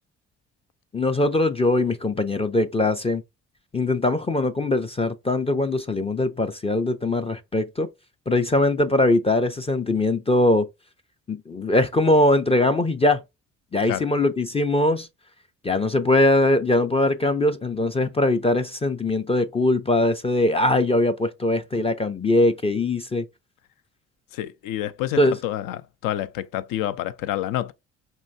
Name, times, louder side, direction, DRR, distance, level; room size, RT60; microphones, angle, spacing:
voice 1, 0.9-3.2 3.7-7.9 8.3-10.7 11.3-13.2 13.7-15.1 15.6-23.2 25.2-25.3, left 2 dB, 15° left, 0.5 m, -21 dB
voice 2, 24.3-27.7, left 13 dB, 65° left, 0.6 m, -28 dB
4.5 x 3.1 x 2.6 m
hypercardioid pair, 50°, 35 cm